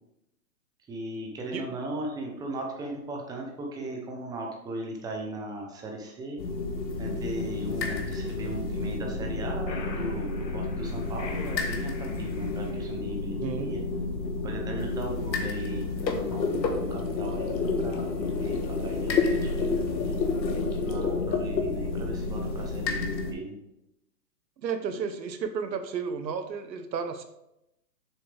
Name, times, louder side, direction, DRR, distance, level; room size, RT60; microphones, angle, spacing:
voice 1, 0.9-6.4 7.0-13.8 14.4-20.2 20.6-23.6, right 1 dB, 10° right, 0 dB, 0.8 m, -38 dB
sound 1, 6.4-23.3, left 3 dB, 90° left, 1.6 m, -30 dB
voice 2, 13.4-13.7 24.6-27.2, right 6 dB, 85° right, 8 dB, 1.2 m, -32 dB
7.5 x 6.8 x 3.4 m, 0.84 s
hypercardioid pair, 150°, 50 cm